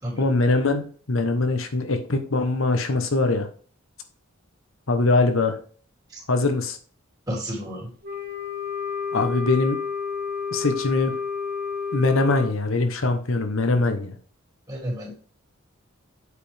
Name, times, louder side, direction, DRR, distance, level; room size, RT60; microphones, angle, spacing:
voice 1, 0.2-3.5 4.9-5.5 6.3-6.8 9.1-9.8 10.5-11.1 11.9-14.1, left 2 dB, 75° left, 7 dB, 1.0 m, -22 dB
voice 2, 7.3-7.9 14.7-15.1, equal, 20° right, -3 dB, 3.0 m, -31 dB
Wind instrument woodwind instrument, 8.0-12.5, left 5 dB, 50° right, 1.9 m, -30 dB
8.3 x 4.9 x 3.4 m, 0.42 s
head